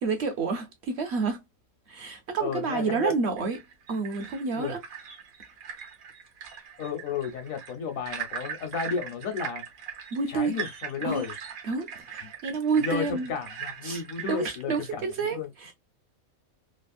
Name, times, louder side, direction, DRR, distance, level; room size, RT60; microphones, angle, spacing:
voice 1, 0.0-1.4 1.9-3.6 3.9-4.8 10.1-10.6 11.0-11.2 11.6-13.3 13.8-14.0 14.3-15.7, right 4 dB, 60° right, 0.8 m, -29 dB
voice 2, 2.4-3.1 4.5-4.8 6.8-9.6 10.3-11.3 12.2-12.3 12.8-15.1 15.3-15.5, left 6 dB, 75° left, 1.2 m, -33 dB
sound 1, 3.4-14.9, right 7 dB, 85° right, 1.3 m, -40 dB
3.3 x 2.0 x 2.3 m
omnidirectional pair, 1.4 m